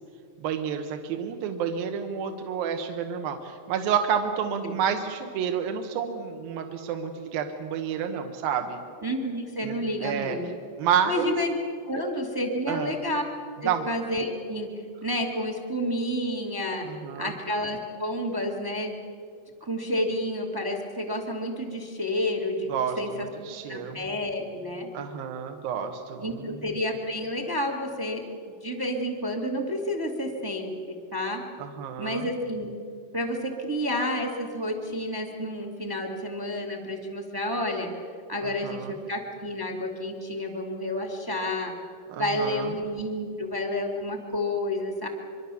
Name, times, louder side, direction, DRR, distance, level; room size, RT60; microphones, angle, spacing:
voice 1, 0.4-8.8 9.6-10.4 10.8-11.3 12.7-12.9 13.7-13.8 16.9-17.3 22.7-24.0 24.9-26.6 31.6-32.2 38.4-38.9 42.1-42.7, right 7 dB, 70° right, 5 dB, 2.8 m, -30 dB
voice 2, 9.0-10.5 11.1-11.6 11.9-13.2 13.6-16.9 17.2-19.0 19.6-23.3 23.7-24.9 26.2-28.2 28.6-31.4 32.0-32.8 33.1-37.9 38.3-41.7 42.2-45.1, left 1 dB, 25° right, 3 dB, 0.4 m, -30 dB
24.5 x 24.0 x 6.9 m, 2.3 s
omnidirectional pair, 4.7 m